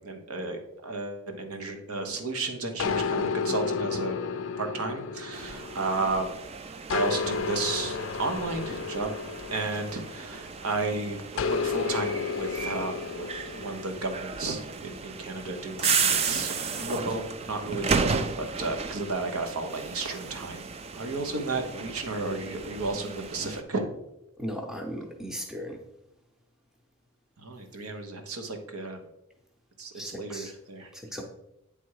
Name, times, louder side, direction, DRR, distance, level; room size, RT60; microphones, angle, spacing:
voice 1, 0.0-4.2 4.6-6.3 6.9-9.1 9.5-13.3 13.5-20.6 20.9-23.9 27.4-29.0 29.8-30.9, right 3 dB, 85° right, 5 dB, 1.0 m, -33 dB
sound 1, 2.8-6.4 6.9-10.6 11.4-14.0, left 5 dB, 60° left, 0.4 m, -32 dB
sound 2, 5.3-23.6, right 5 dB, 30° right, 0.3 m, -34 dB
voice 2, 24.4-25.8 29.9-30.5 30.9-31.2, equal, ahead, 1 dB, 0.7 m, -37 dB
8.4 x 3.5 x 4.7 m, 0.86 s
head